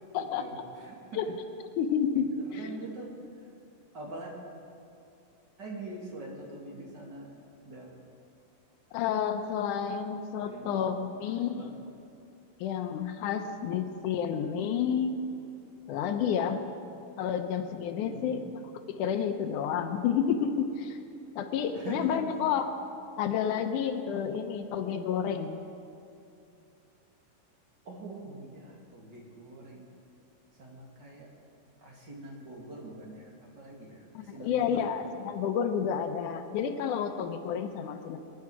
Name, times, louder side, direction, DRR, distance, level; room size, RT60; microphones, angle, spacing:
voice 1, 0.2-1.0 2.5-3.1 3.4-3.5 3.9-4.3 5.6-7.3 7.6-7.9 10.4-11.8 18.0-18.4 21.7-22.1 27.8-29.9 30.5-31.3 31.8-35.0, right 2 dB, 35° right, -2 dB, 2.3 m, -44 dB
voice 2, 1.8-2.7 8.9-11.8 12.6-15.2 15.9-16.6 17.2-18.4 18.9-21.0 21.4-22.7 23.2-25.6 34.1-38.2, left 8 dB, 75° left, 7 dB, 2.2 m, -30 dB
21.0 x 10.5 x 4.8 m, 2.6 s
omnidirectional pair, 3.8 m